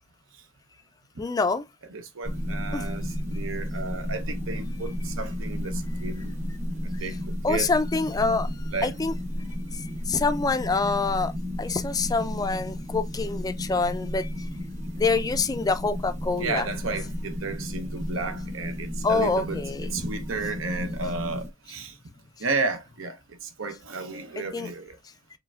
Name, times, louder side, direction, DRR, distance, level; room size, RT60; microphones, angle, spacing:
voice 1, 1.2-1.6 2.7-2.9 7.4-8.5 8.8-9.1 9.7-11.3 11.6-14.5 15.0-16.7 19.0-19.9 24.5-24.7, left 4 dB, 20° left, 0.3 m, -26 dB
voice 2, 1.9-6.3 6.8-7.1 7.5-7.7 8.7-8.9 16.4-19.6 19.9-21.9 22.4-23.2 23.6-24.9, right 4 dB, 75° right, 0.7 m, -32 dB
sound 1, 2.2-21.5, equal, 35° right, 0.8 m, -33 dB
4.8 x 3.2 x 2.3 m
head